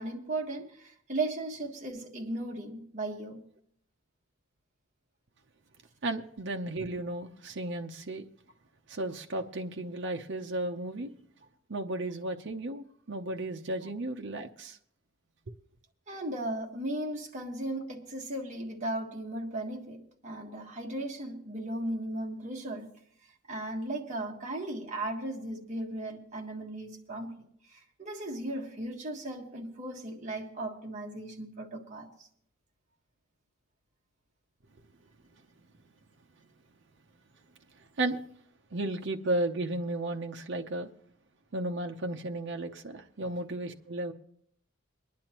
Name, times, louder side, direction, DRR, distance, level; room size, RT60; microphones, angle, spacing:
voice 1, 0.0-3.4 16.1-22.9 23.5-27.3 27.7-32.1, right 1 dB, 35° right, 1.5 m, -36 dB
voice 2, 6.0-8.2 8.9-11.1 11.7-14.8 38.0-38.2 38.7-40.9 41.5-44.1, right 2 dB, 60° right, 0.7 m, -34 dB
23.5 x 10.5 x 3.0 m
head